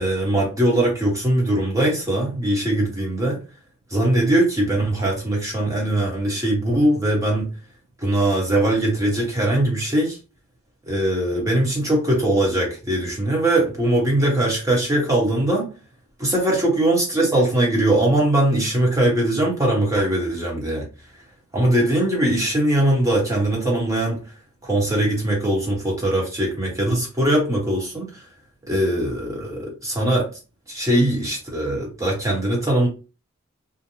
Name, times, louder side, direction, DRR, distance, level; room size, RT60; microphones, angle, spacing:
voice 1, 0.0-3.4 3.9-7.5 8.0-10.2 10.9-15.7 16.2-20.9 21.5-24.3 24.6-28.2 28.7-30.3 30.7-32.9, right 1 dB, 15° right, 1.0 m, -21 dB
2.6 x 2.1 x 2.9 m
head